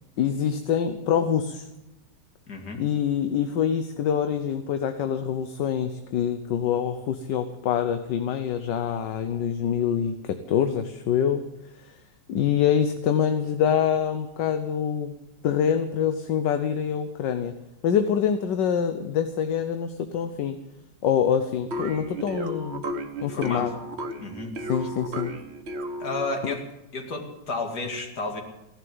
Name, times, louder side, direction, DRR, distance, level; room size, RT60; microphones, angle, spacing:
voice 1, 0.2-1.7 2.8-11.4 11.8-11.9 12.3-15.1 15.4-17.5 17.8-20.6 21.0-22.9 23.2-23.7 24.7-25.3 26.4-26.5, left 8 dB, 75° left, 8 dB, 1.5 m, -25 dB
voice 2, 2.5-2.8 23.3-23.7 24.2-24.5 26.0-26.7 26.9-28.4, left 3 dB, 60° left, 3 dB, 2.7 m, -32 dB
sound 1, 21.7-26.5, right 1 dB, 40° right, 1.2 m, -34 dB
16.5 x 11.5 x 7.8 m, 0.94 s
omnidirectional pair, 1.9 m